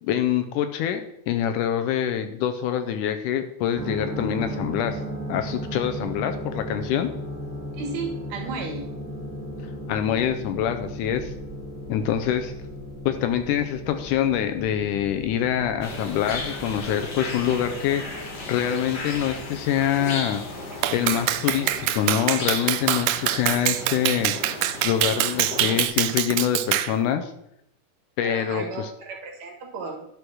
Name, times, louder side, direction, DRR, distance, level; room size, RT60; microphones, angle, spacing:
voice 1, 0.0-5.0 5.3-7.1 9.9-11.3 11.9-12.5 13.1-20.4 20.9-24.3 24.8-27.3 28.2-28.9, left 10 dB, 80° left, 8 dB, 1.9 m, -25 dB
sound 1, 3.7-22.1, equal, 30° right, 1.7 m, -37 dB
voice 2, 7.8-8.9 28.2-30.1, right 4 dB, 55° right, 1 dB, 2.5 m, -34 dB
sound 2, 15.8-25.9, left 3 dB, 50° left, 1.2 m, -35 dB
Clapping, 20.8-27.0, right 14 dB, 90° right, 2.5 m, -24 dB
11.5 x 5.1 x 6.2 m, 0.80 s
omnidirectional pair, 4.2 m